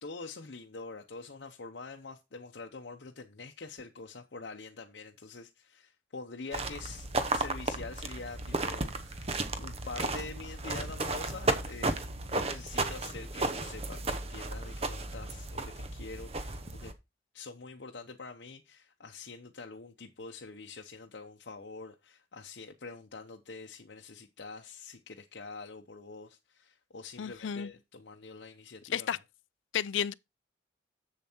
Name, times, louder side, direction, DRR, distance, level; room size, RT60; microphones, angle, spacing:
voice 1, 0.0-16.9 17.3-29.2, left 3 dB, 65° left, 0.8 m, -46 dB
sound 1, 6.5-16.9, right 2 dB, 35° right, 0.8 m, -34 dB
voice 2, 27.2-27.7 28.9-29.2 29.7-30.1, left 8 dB, 85° left, 0.4 m, -32 dB
7.5 x 7.0 x 4.4 m
head